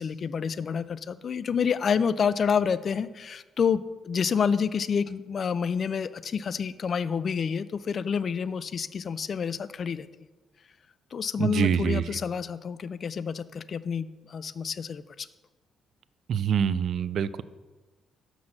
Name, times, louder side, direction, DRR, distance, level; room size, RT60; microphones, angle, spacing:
voice 1, 0.0-10.1 11.1-15.3, left 6 dB, 50° left, 15 dB, 0.3 m, -28 dB
voice 2, 11.4-12.0 16.3-17.4, right 8 dB, 65° right, 15 dB, 0.3 m, -25 dB
6.1 x 5.8 x 6.4 m, 1.2 s
cardioid pair, 90°, 0 cm